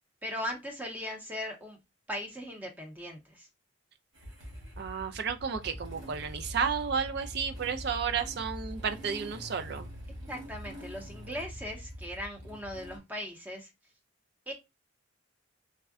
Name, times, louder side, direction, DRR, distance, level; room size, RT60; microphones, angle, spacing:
voice 1, 0.2-1.8 2.1-3.5 10.3-13.7 14.5-14.6, equal, 10° right, 0.6 m, -39 dB
Motorcycle / Engine starting, 4.1-13.0, equal, 85° right, 1.3 m, -44 dB
voice 2, 4.8-9.9, right 6 dB, 55° right, 0.4 m, -32 dB
3.5 x 2.2 x 2.3 m
head